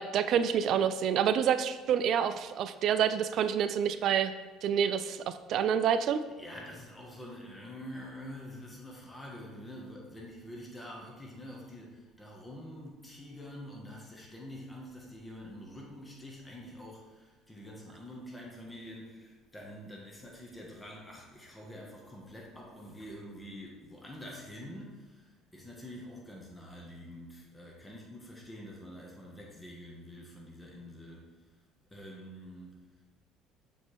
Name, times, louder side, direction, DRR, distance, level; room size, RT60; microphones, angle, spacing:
voice 1, 0.0-4.3 4.6-6.2, right 8 dB, 60° right, 12 dB, 0.3 m, -28 dB
voice 2, 6.4-31.4 31.9-32.7, equal, 15° left, -1 dB, 1.4 m, -46 dB
7.1 x 4.2 x 3.4 m, 1.3 s
hypercardioid pair, 65°, 0 cm